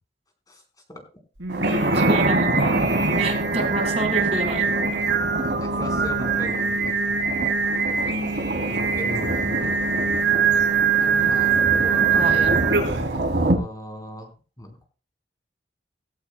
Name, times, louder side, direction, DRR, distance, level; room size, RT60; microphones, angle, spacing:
Singing, 1.4-13.1, right 5 dB, 90° right, 4.3 m, -23 dB
Thunder, 1.5-13.6, right 1 dB, 70° right, 2.7 m, -27 dB
voice 1, 1.9-2.6 3.2-4.6 5.4-5.6 12.1-12.5, right 2 dB, 35° right, 5 dB, 1.8 m, -28 dB
voice 2, 5.6-6.9 8.7-9.7 11.0-12.3 13.3-14.3 14.6-14.9, equal, 20° left, 2 dB, 4.1 m, -37 dB
17.5 x 16.0 x 2.2 m, 0.36 s
head